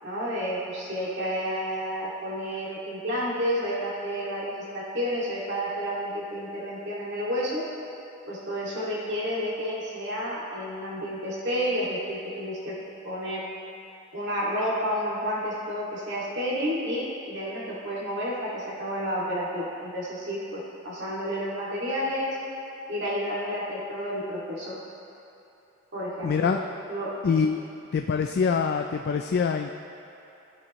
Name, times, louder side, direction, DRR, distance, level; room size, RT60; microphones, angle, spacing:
voice 1, 0.0-7.6 8.3-12.8 13.0-13.4 14.1-22.4 22.9-24.7 25.9-26.6 26.9-27.2, equal, 55° right, -7 dB, 2.3 m, -30 dB
voice 2, 26.2-26.6 27.2-27.6 27.9-29.7, left 6 dB, 45° left, 5 dB, 0.3 m, -24 dB
13.5 x 7.6 x 3.1 m, 2.9 s
head